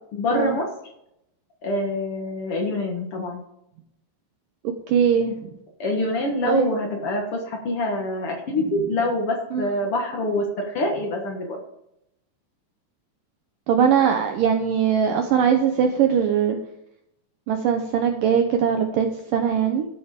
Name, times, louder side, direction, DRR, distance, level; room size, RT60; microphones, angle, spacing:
voice 1, 0.1-0.7 1.6-3.4 5.8-11.6, left 1 dB, 80° left, 1 dB, 1.3 m, -25 dB
voice 2, 4.9-5.5 6.5-6.7 9.5-9.7 13.7-16.6 17.5-19.9, right 7 dB, 80° right, 5 dB, 2.0 m, -21 dB
14.0 x 7.7 x 5.2 m, 0.81 s
omnidirectional pair, 5.0 m